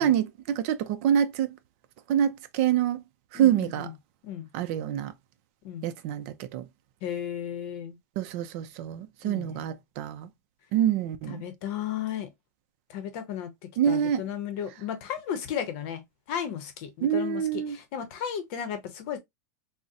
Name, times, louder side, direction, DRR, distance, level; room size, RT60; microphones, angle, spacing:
voice 1, 0.0-1.6 2.1-3.0 3.3-3.9 4.5-5.1 5.8-6.6 8.2-10.3 10.7-11.4 13.8-14.2 17.0-17.8, right 10 dB, 45° right, 0.5 m, -26 dB
voice 2, 3.3-3.9 4.2-4.5 5.6-5.9 7.0-8.0 9.2-9.5 11.3-12.3 12.9-13.5 13.9-19.2, left 9 dB, 50° left, 0.7 m, -34 dB
3.8 x 2.1 x 2.6 m
supercardioid pair, 160°, 9 cm